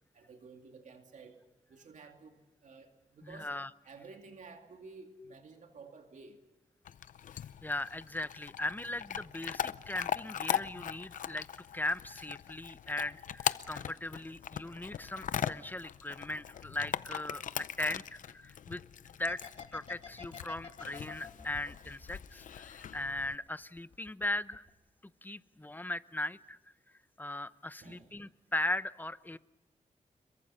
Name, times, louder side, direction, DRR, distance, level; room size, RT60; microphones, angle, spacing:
voice 1, 0.1-1.4 1.7-3.5 3.8-6.4 27.8-28.2, right 4 dB, 70° right, 4 dB, 2.5 m, -53 dB
voice 2, 3.2-3.7 7.6-11.5 11.7-18.8 19.2-19.4 19.7-24.7 25.2-26.6 27.2-29.4, left 1 dB, 15° left, 14 dB, 0.8 m, -38 dB
Chewing mastication / Dog, 6.8-23.4, left 9 dB, 90° left, 0.6 m, -40 dB
sound 1, 19.3-23.0 23.3-24.2 24.5-24.7, left 6 dB, 50° left, 2.5 m, -48 dB
27.0 x 23.0 x 5.6 m, 1.1 s
wide cardioid pair, 90°, 13 cm